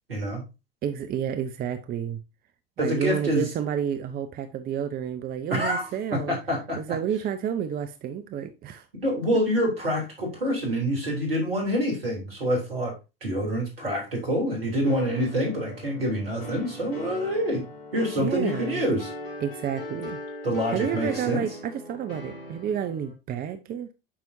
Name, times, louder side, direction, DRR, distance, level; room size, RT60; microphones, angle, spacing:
voice 1, 0.1-0.4 2.8-3.4 5.5-6.8 9.0-12.9 13.2-17.6 17.9-19.1 20.4-21.4, equal, 80° right, 3.1 m, -26 dB
voice 2, 0.8-2.2 2.8-6.4 6.8-8.9 18.2-18.8 19.4-20.2 20.7-23.9, right 8 dB, 30° right, 0.7 m, -30 dB
sound 1, 14.9-23.1, left 2 dB, 70° left, 2.4 m, -39 dB
8.6 x 5.8 x 2.7 m
figure-of-eight pair, 75°, 29 cm